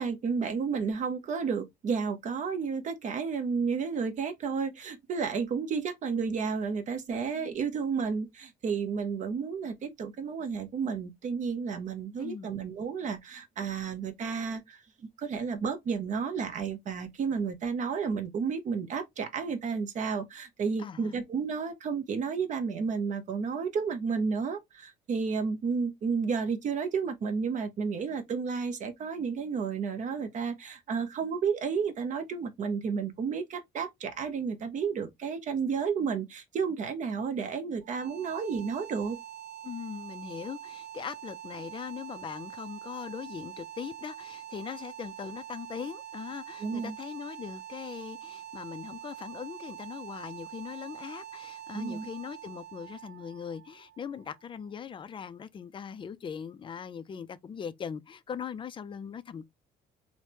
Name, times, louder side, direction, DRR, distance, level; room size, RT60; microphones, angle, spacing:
voice 1, 0.0-14.8 15.2-39.2 46.6-46.9 51.7-52.1, right 5 dB, 45° right, 0.8 m, -32 dB
voice 2, 12.2-12.5 20.8-21.2 39.6-59.5, left 7 dB, 30° left, 0.3 m, -40 dB
sound 1, 37.8-54.7, right 10 dB, 90° right, 0.5 m, -45 dB
3.2 x 2.1 x 2.8 m
cardioid pair, 110°, 17 cm